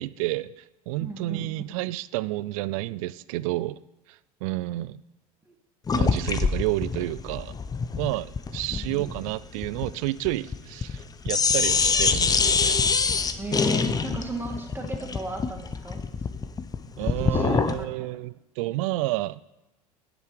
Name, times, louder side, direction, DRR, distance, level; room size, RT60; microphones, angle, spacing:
voice 1, 0.0-3.8 4.1-5.0 5.9-7.6 8.0-12.8 17.0-19.4, right 18 dB, 55° right, 18 dB, 0.4 m, -30 dB
voice 2, 1.0-1.5 8.7-9.1 13.4-16.0 17.0-18.1, right 2 dB, 10° right, 3 dB, 2.2 m, -36 dB
sound 1, 5.9-11.0 11.3-17.8, left 5 dB, 20° left, 0.8 m, -25 dB
10.0 x 9.8 x 4.8 m, 0.95 s
figure-of-eight pair, 75°, 20 cm